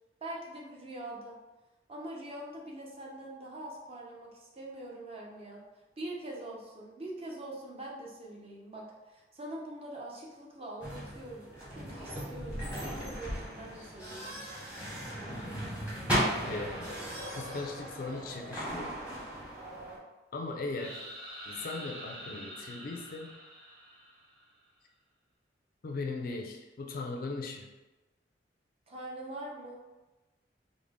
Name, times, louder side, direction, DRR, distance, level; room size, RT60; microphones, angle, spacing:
voice 1, 0.2-1.3 1.9-5.6 6.0-14.4 28.9-29.8, right 1 dB, 30° right, -2 dB, 0.6 m, -43 dB
sound 1, 10.8-20.0, equal, 10° right, 0.8 m, -36 dB
voice 2, 16.5-16.9 17.3-19.0 20.3-21.0 21.4-23.4 25.8-27.7, left 3 dB, 50° left, 3 dB, 0.4 m, -38 dB
sound 2, 20.7-24.6, equal, 70° right, 1.0 m, -46 dB
3.4 x 2.0 x 3.5 m, 1.1 s
head